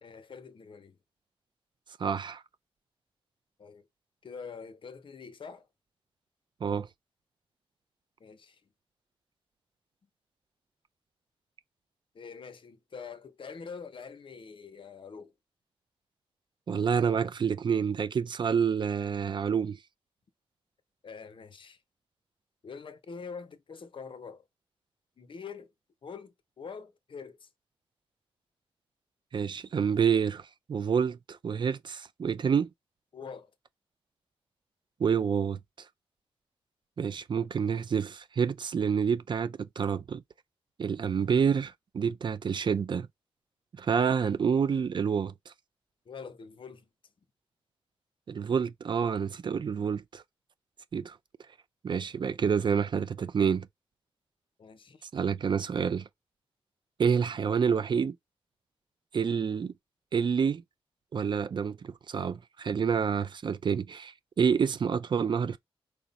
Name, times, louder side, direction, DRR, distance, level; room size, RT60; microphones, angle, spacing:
voice 1, 0.0-1.0 3.6-3.9 4.2-5.7 8.2-8.6 12.1-15.3 21.0-21.8 22.6-24.4 25.2-25.7 26.0-27.5 33.1-33.5 46.1-46.9 54.6-55.0, left 5 dB, 55° left, 0.7 m, -45 dB
voice 2, 2.0-2.4 6.6-6.9 16.7-19.8 29.3-32.7 35.0-35.6 37.0-40.2 40.8-43.1 43.8-45.5 48.3-50.2 50.9-51.2 51.8-53.7 55.1-56.1 57.0-58.2 59.1-59.7 60.1-60.6 61.1-65.6, right 6 dB, 50° right, 0.4 m, -28 dB
4.8 x 2.1 x 4.0 m
wide cardioid pair, 90°, 10 cm